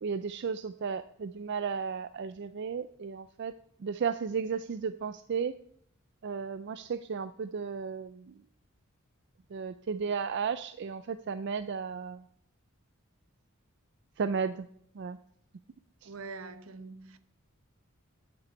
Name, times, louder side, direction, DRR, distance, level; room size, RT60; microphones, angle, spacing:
voice 1, 0.0-3.5 3.8-5.6 6.2-8.3 9.5-12.2 14.2-14.7 14.9-15.2 16.0-16.1, right 6 dB, 55° right, 0.4 m, -34 dB
voice 2, 16.0-17.2, right 4 dB, 75° right, 0.8 m, -44 dB
10.5 x 7.0 x 5.3 m
head